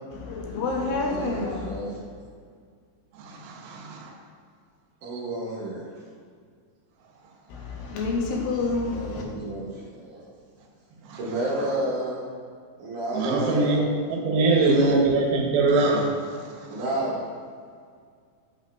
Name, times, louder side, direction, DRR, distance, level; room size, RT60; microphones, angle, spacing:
voice 1, 0.1-1.8 7.5-9.3, left 3 dB, 80° left, -1 dB, 2.3 m, -28 dB
voice 2, 1.0-2.0 5.0-5.8 8.9-10.2 11.1-12.2 12.8-13.8 14.1-14.8 16.7-17.2, right 1 dB, 65° right, -6 dB, 2.3 m, -31 dB
voice 3, 3.2-4.1 11.1-11.2 13.1-13.8 14.1-16.4 16.7-16.8, right 3 dB, 85° right, 1 dB, 2.6 m, -23 dB
8.1 x 5.3 x 2.2 m, 2.1 s
omnidirectional pair, 4.3 m